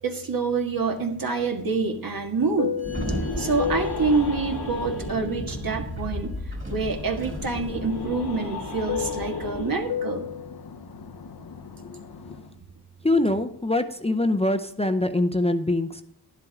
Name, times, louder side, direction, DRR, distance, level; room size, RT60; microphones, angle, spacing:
voice 1, 0.0-2.8 3.4-6.4 6.7-10.3, right 4 dB, 60° right, 3 dB, 1.7 m, -26 dB
Fixed-wing aircraft airplane, 1.0-6.3 6.7-12.5, left 9 dB, 65° left, 0.8 m, -35 dB
sound 1, 2.8-9.7, left 2 dB, 85° left, 1.6 m, -34 dB
Sliding door, 2.8-8.0, right 2 dB, 30° right, 2.7 m, -38 dB
voice 2, 13.0-16.0, left 2 dB, 15° left, 8 dB, 0.6 m, -24 dB
11.0 x 11.0 x 3.6 m, 0.74 s
wide cardioid pair, 100°, 39 cm